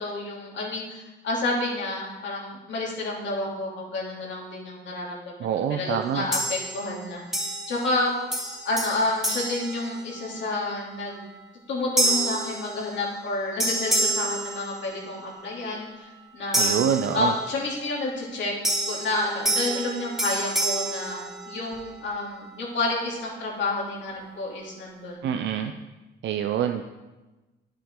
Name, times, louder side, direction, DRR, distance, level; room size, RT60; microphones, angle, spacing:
voice 1, 0.0-5.3 5.7-7.4 7.7-8.1 8.6-11.2 11.7-16.7 17.1-18.5 18.9-25.2, left 2 dB, 65° left, -3 dB, 2.9 m, -30 dB
voice 2, 5.4-6.3 16.5-17.3 25.2-25.7 26.2-26.8, right 9 dB, 70° right, 7 dB, 0.5 m, -26 dB
sound 1, 6.3-7.0 7.3-8.0 8.3-10.5 11.0-11.3 12.0-13.3 13.6-15.2 16.5-17.7 18.6-21.9, right 1 dB, ahead, 2.6 m, -28 dB
10.0 x 7.6 x 3.7 m, 1.1 s
cardioid pair, 90°, 20 cm